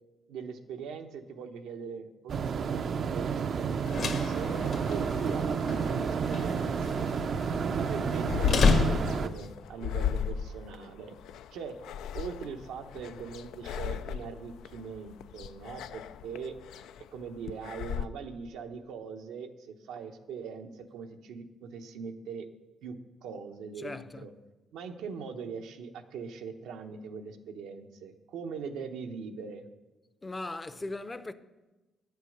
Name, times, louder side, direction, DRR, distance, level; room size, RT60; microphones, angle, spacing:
voice 1, 0.3-3.6 4.2-7.1 7.7-11.2 11.5-11.7 12.1-16.6 17.1-22.5 22.8-22.9 23.2-24.3 24.7-29.7, right 6 dB, 90° right, 0.9 m, -41 dB
sound 1, 2.3-9.3, right 6 dB, 55° right, 0.5 m, -31 dB
sound 2, 3.7-9.5, left 4 dB, 65° left, 1.4 m, -31 dB
sound 3, 8.3-18.1, left 9 dB, 85° left, 0.3 m, -36 dB
voice 2, 23.8-24.3 30.2-31.3, left 2 dB, 20° left, 0.6 m, -38 dB
9.3 x 8.1 x 6.5 m
cardioid pair, 90°, 0 cm